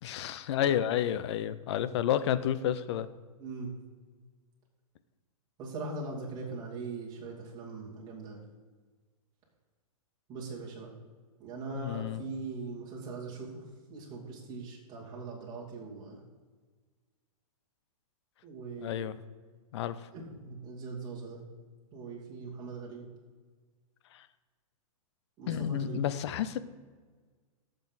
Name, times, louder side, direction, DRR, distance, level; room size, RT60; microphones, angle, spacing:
voice 1, 0.0-3.1 11.7-12.2 18.8-19.2 19.7-20.1 24.1-24.3 25.5-26.6, left 10 dB, 50° left, 15 dB, 0.6 m, -30 dB
voice 2, 3.4-3.7 5.6-8.4 10.3-10.9 11.4-13.6 13.9-16.2 18.4-19.1 20.1-21.4 21.9-23.1 25.4-26.0, right 3 dB, 20° right, -4 dB, 2.6 m, -41 dB
14.5 x 6.5 x 4.0 m, 1.5 s
hypercardioid pair, 150°, 19 cm